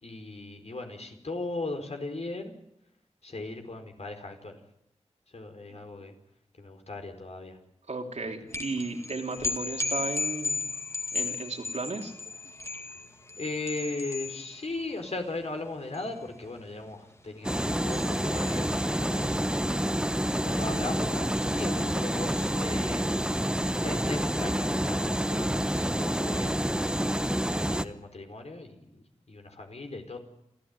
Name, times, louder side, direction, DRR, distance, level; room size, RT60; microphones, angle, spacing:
voice 1, 0.0-2.5 3.2-4.6 5.3-6.1 6.6-7.6 13.4-19.8 20.4-23.1 23.8-26.9 27.7-30.2, left 2 dB, 65° left, 5 dB, 4.7 m, -38 dB
voice 2, 7.9-10.6 11.1-12.1, right 3 dB, 75° right, 3 dB, 3.2 m, -34 dB
sound 1, 8.5-19.2, left 3 dB, 25° left, 2.1 m, -36 dB
sound 2, 17.4-27.9, equal, 5° right, 1.1 m, -28 dB
29.0 x 14.0 x 9.7 m, 0.80 s
wide cardioid pair, 70°, 12 cm